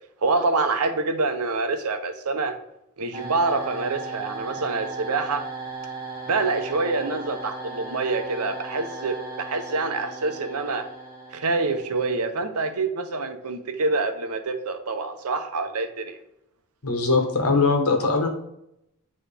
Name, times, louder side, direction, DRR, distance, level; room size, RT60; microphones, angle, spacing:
voice 1, 0.2-2.5 3.0-5.4 6.3-10.9 11.3-16.2, right 3 dB, 80° right, 7 dB, 0.7 m, -26 dB
sound 1, 3.1-12.0, right 3 dB, 20° right, 2.0 m, -37 dB
voice 2, 16.8-18.3, left 3 dB, 75° left, 3 dB, 1.2 m, -21 dB
8.9 x 3.1 x 3.4 m, 0.81 s
head